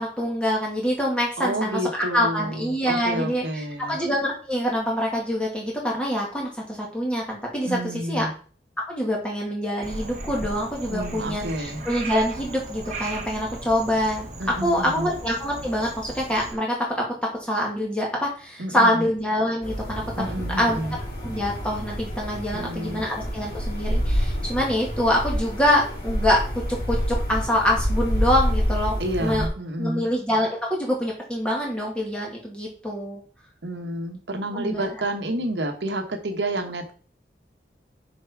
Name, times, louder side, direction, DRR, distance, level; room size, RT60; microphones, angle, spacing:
voice 1, 0.0-7.8 8.1-8.3 8.9-14.3 14.6-17.0 17.5-20.0 20.6-20.8 21.2-26.6 26.9-28.9 29.2-29.4 29.8-33.2 34.5-34.9, equal, 5° left, -3 dB, 2.1 m, -25 dB
voice 2, 1.4-4.0 7.6-8.3 10.9-11.8 14.4-15.1 18.6-19.0 20.2-20.9 22.5-23.0 29.0-30.1 33.6-36.9, right 1 dB, 85° right, 5 dB, 1.1 m, -29 dB
Frog, 9.8-16.5, right 2 dB, 40° right, 1.2 m, -36 dB
sound 1, 19.6-29.5, equal, 50° left, 3.1 m, -28 dB
6.7 x 4.7 x 4.6 m, 0.41 s
head